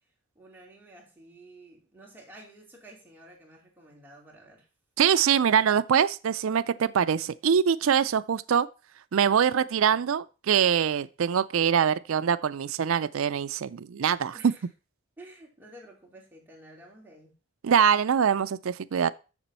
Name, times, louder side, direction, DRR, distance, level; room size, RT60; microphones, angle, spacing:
voice 1, 0.3-4.7 14.3-14.6 15.2-17.3, right 1 dB, 10° right, 2.6 m, -51 dB
voice 2, 5.0-8.7 9.1-14.5 17.6-19.1, right 7 dB, 70° right, 0.4 m, -24 dB
7.2 x 6.8 x 5.4 m
head